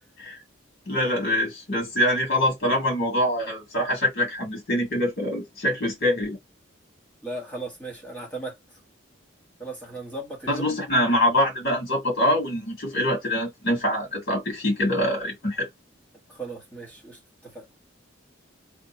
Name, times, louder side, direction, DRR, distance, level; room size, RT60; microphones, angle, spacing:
voice 1, 0.9-6.4 10.5-15.7, left 1 dB, 50° left, 1.9 m, -24 dB
voice 2, 7.2-8.6 9.6-10.8 16.3-17.7, right 2 dB, 10° left, 1.3 m, -37 dB
3.5 x 2.3 x 4.2 m
head